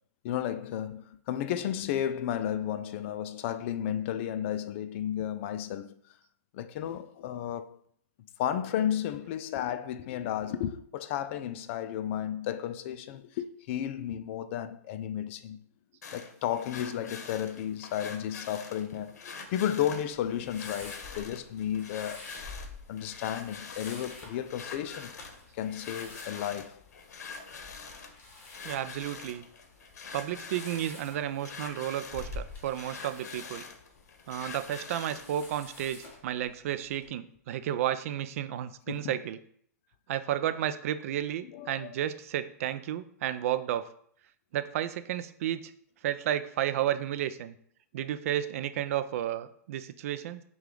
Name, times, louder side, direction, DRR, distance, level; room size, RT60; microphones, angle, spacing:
voice 1, 0.2-6.0 6.5-7.8 8.4-15.6 16.1-22.3 22.9-25.1 25.5-26.8 38.9-39.1 41.5-42.0, left 10 dB, 45° left, 0.4 m, -33 dB
sound 1, 16.0-35.4, left 5 dB, 75° left, 0.8 m, -45 dB
sound 2, 20.1-37.1, left 3 dB, 20° left, 1.2 m, -49 dB
voice 2, 28.6-29.4 30.1-33.6 34.3-39.4 40.1-43.9 44.5-45.7 46.0-47.5 47.9-50.4, right 11 dB, 55° right, 0.4 m, -32 dB
5.6 x 2.3 x 3.7 m
hypercardioid pair, 130°, 9 cm